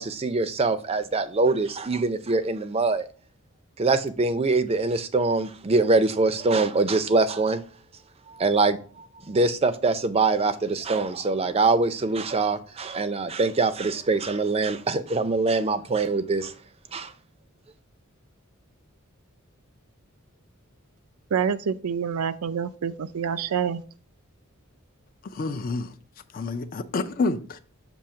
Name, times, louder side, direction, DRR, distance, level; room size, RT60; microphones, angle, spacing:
voice 1, 0.0-3.0 3.8-7.6 8.3-16.5 16.9-17.1, right 3 dB, 30° right, 0.5 m, -24 dB
voice 2, 21.3-23.8, right 7 dB, 85° right, 0.5 m, -27 dB
voice 3, 25.2-25.9 26.3-27.6, left 3 dB, 40° left, 0.5 m, -28 dB
7.0 x 2.8 x 5.6 m
head